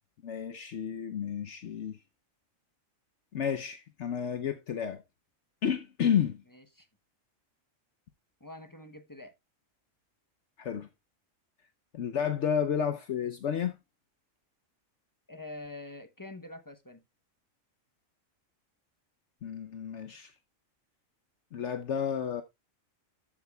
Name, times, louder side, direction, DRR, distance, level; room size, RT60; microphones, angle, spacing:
voice 1, 0.2-2.0 3.3-5.0 5.6-6.4 10.6-10.9 11.9-13.8 19.4-20.3 21.5-22.4, left 8 dB, 65° left, 1.0 m, -31 dB
voice 2, 6.5-6.9 8.4-9.3 15.3-17.0, left 2 dB, 20° left, 0.7 m, -45 dB
13.5 x 7.4 x 2.3 m
omnidirectional pair, 1.4 m